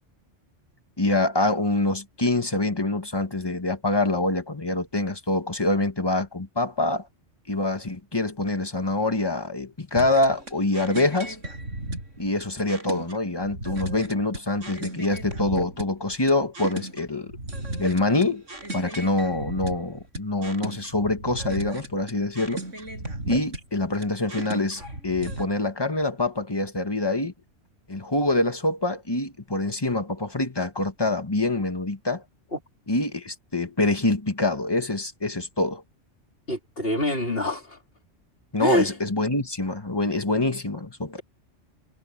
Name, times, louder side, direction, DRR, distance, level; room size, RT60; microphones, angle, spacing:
voice 1, 1.0-7.1 7.5-11.4 12.2-17.3 17.8-18.4 18.7-22.6 23.3-27.3 27.9-32.2 32.9-35.8 38.5-41.2, left 2 dB, 20° left, 1.8 m, -25 dB
sound 1, 10.0-25.4, right 1 dB, 85° right, 7.3 m, -36 dB
voice 2, 36.5-37.8 38.6-38.9, left 1 dB, 50° left, 4.0 m, -25 dB
omnidirectional pair, 1.3 m